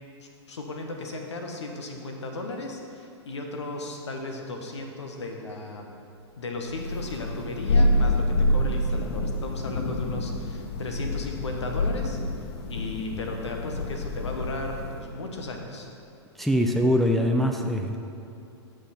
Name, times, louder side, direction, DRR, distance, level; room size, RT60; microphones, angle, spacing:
voice 1, 0.2-5.9 6.4-12.2 12.7-15.9, left 2 dB, 80° left, 2 dB, 1.1 m, -35 dB
Thunder, 6.7-15.1, left 1 dB, 65° left, 0.8 m, -27 dB
voice 2, 16.4-18.0, equal, ahead, 2 dB, 0.5 m, -23 dB
10.5 x 6.2 x 4.3 m, 2.8 s
hypercardioid pair, 110°, 14 cm